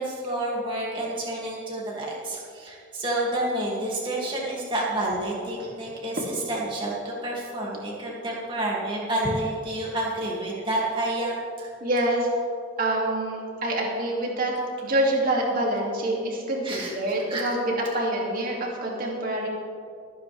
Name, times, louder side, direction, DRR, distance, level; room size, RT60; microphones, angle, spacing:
voice 1, 0.0-11.7 16.6-16.9 17.3-17.4, right 1 dB, 25° right, -5 dB, 2.6 m, -29 dB
voice 2, 11.8-12.3 12.8-19.5, right 1 dB, 50° right, -2 dB, 2.7 m, -26 dB
25.0 x 9.2 x 3.5 m, 2.3 s
head